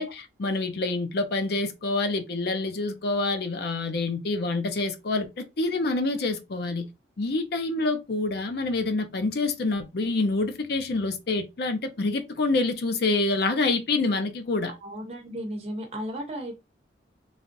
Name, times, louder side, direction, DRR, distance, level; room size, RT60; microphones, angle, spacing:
voice 1, 0.0-6.9 7.2-14.7, left 3 dB, 60° left, 0.5 m, -27 dB
voice 2, 14.7-16.5, equal, 35° right, 0.9 m, -35 dB
3.2 x 2.4 x 2.6 m
head